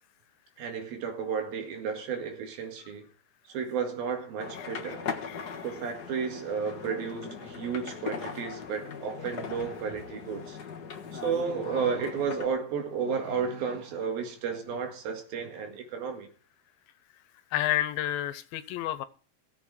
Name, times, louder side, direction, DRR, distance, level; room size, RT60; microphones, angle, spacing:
voice 1, 0.6-3.1 3.5-5.1 5.6-10.6 11.1-16.3, right 6 dB, 90° right, 3.8 m, -32 dB
sound 1, 4.4-12.5, left 6 dB, 55° left, 1.1 m, -39 dB
voice 2, 17.5-19.1, left 13 dB, 85° left, 2.7 m, -30 dB
16.5 x 7.9 x 4.8 m
omnidirectional pair, 4.1 m